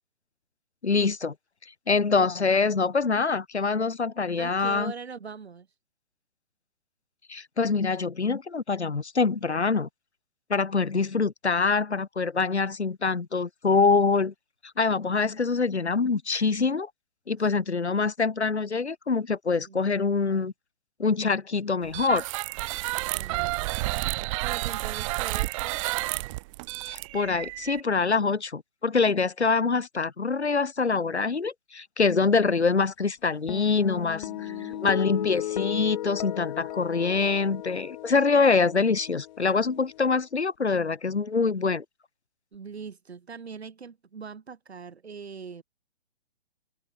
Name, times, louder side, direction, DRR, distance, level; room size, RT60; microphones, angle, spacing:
voice 1, 0.8-1.3 1.9-4.9 7.3-9.9 10.5-14.3 14.8-16.9 17.3-20.5 21.0-22.2 26.9-41.8, left 4 dB, 85° left, 3.0 m, -25 dB
voice 2, 4.4-5.7 19.7-20.5 23.1-23.8 24.4-25.8 34.1-34.9 42.5-45.6, right 5 dB, 75° right, 7.1 m, -42 dB
sound 1, 21.9-27.8, right 22 dB, 30° right, 1.3 m, -30 dB
sound 2, 33.5-40.1, left 14 dB, 45° left, 7.7 m, -35 dB
open air
hypercardioid pair, 135°, 32 cm